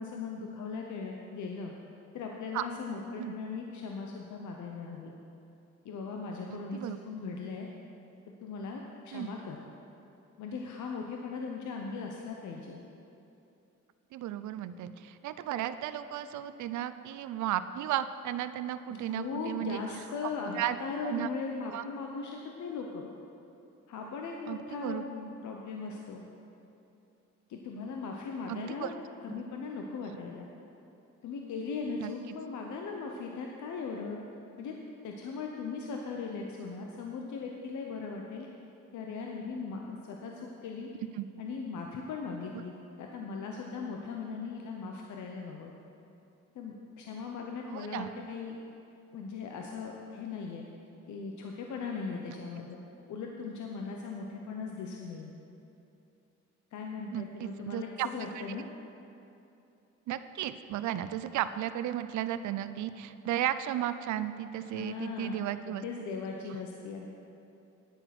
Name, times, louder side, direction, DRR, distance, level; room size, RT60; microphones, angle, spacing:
voice 1, 0.0-1.7 2.1-5.1 5.8-7.7 8.4-9.6 10.4-12.8 18.9-23.1 23.9-26.2 27.5-28.9 29.2-30.5 31.2-34.2 34.6-34.7 35.0-38.5 38.9-40.9 41.4-45.7 46.5-48.6 49.1-50.6 51.1-52.8 53.1-55.3 56.7-58.6 64.6-67.1, left 4 dB, 70° left, 1 dB, 1.0 m, -39 dB
voice 2, 6.5-7.0 9.1-9.3 14.1-19.8 20.6-20.8 21.0-21.3 21.7-21.8 24.5-25.0 28.5-28.9 32.0-32.1 41.2-41.3 47.7-48.1 57.1-58.1 60.1-65.8, right 12 dB, 70° right, 12 dB, 0.5 m, -34 dB
9.9 x 9.0 x 6.0 m, 2.8 s
cardioid pair, 90°, 30 cm